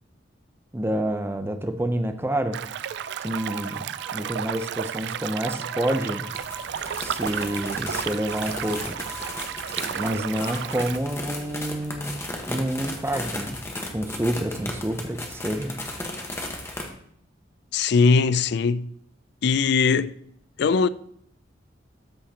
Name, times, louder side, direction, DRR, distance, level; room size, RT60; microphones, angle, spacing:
voice 1, 0.7-2.6 3.2-3.8 4.1-6.3 7.0-9.0 10.0-12.2 12.5-13.6 13.9-15.7, right 1 dB, 15° right, 0.6 m, -28 dB
sound 1, 2.5-11.0, right 9 dB, 65° right, 0.3 m, -33 dB
sound 2, 2.8-10.9, right 2 dB, 85° left, 2.6 m, -44 dB
sound 3, 6.3-16.9, left 1 dB, 15° left, 1.2 m, -35 dB
voice 2, 17.7-18.9 19.4-20.2 20.6-20.9, left 5 dB, 60° left, 0.4 m, -20 dB
13.0 x 5.6 x 2.9 m
head